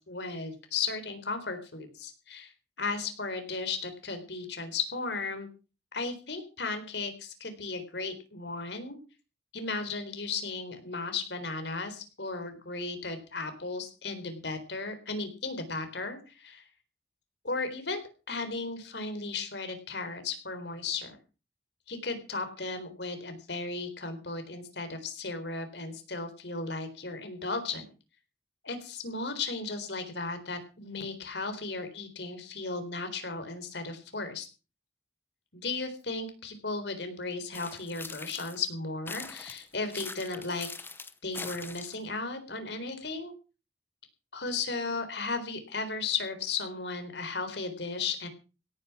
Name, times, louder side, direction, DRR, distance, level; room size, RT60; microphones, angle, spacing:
voice 1, 0.1-2.5 2.8-5.5 5.9-9.0 9.5-16.6 17.4-18.0 18.3-21.2 21.9-27.8 28.6-34.5 35.5-40.7 41.2-43.3 44.3-48.3, left 4 dB, 70° left, 8 dB, 4.1 m, -35 dB
sound 1, 37.5-38.7 39.1-42.1, left 3 dB, 10° left, 0.9 m, -42 dB
17.5 x 9.9 x 6.0 m, 0.33 s
head